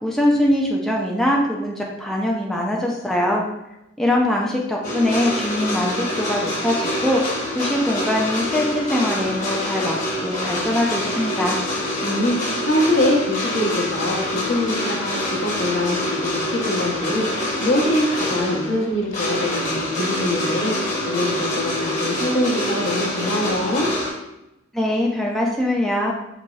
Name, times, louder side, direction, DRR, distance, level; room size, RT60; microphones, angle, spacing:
voice 1, 0.0-3.4 4.0-7.2 7.5-11.6 24.7-26.1, left 1 dB, ahead, -2 dB, 0.3 m, -22 dB
sound 1, 4.8-24.1, left 1 dB, 35° left, 1.0 m, -26 dB
voice 2, 12.0-23.9, left 1 dB, 70° left, -1 dB, 0.7 m, -24 dB
4.0 x 2.9 x 2.3 m, 0.90 s
head